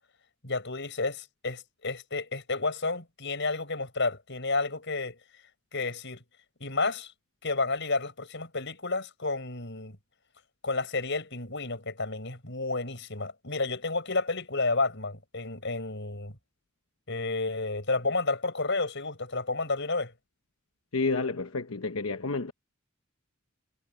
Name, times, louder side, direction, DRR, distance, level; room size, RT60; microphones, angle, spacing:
voice 1, 0.4-5.2 5.7-6.2 6.6-7.1 7.4-10.0 10.6-16.3 17.1-20.1, left 3 dB, 60° left, 7.6 m, -31 dB
voice 2, 20.9-22.5, left 3 dB, 85° left, 1.0 m, -30 dB
head